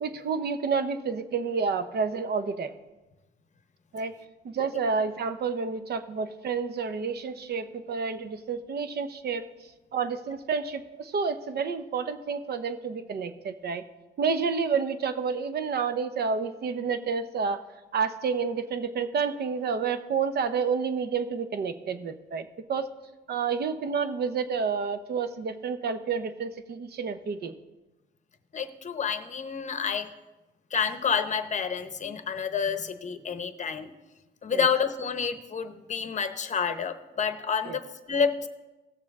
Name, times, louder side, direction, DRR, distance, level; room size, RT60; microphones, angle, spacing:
voice 1, 0.0-2.7 3.9-4.1 4.4-9.5 9.9-13.8 14.2-17.6 17.9-22.9 23.3-27.5 34.5-34.7 37.7-37.8, right 5 dB, 55° right, 10 dB, 0.8 m, -29 dB
voice 2, 28.5-30.1 30.7-33.9 34.4-38.5, left 6 dB, 35° left, 10 dB, 0.8 m, -29 dB
17.0 x 6.8 x 3.6 m, 1.1 s
cardioid pair, 90°, 20 cm